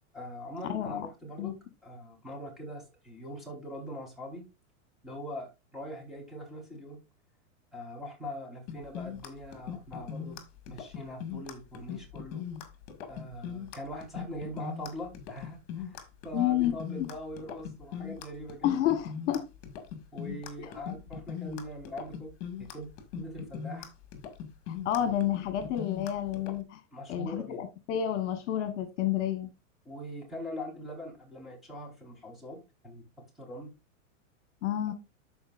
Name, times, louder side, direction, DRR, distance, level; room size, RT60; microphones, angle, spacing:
voice 1, 0.1-4.5 5.0-7.0 7.7-10.4 10.7-12.4 13.1-18.7 20.1-23.9 25.0-25.1 26.9-27.6 29.8-33.8, left 1 dB, ahead, 4.0 m, -42 dB
voice 2, 0.7-1.1 1.4-1.5 16.3-17.1 18.6-19.5 24.7-26.8 27.1-29.5 34.6-34.9, left 11 dB, 60° left, 1.3 m, -30 dB
sound 1, 8.7-26.6, left 8 dB, 45° left, 2.0 m, -40 dB
13.5 x 4.9 x 2.5 m
supercardioid pair, 140°, 40 cm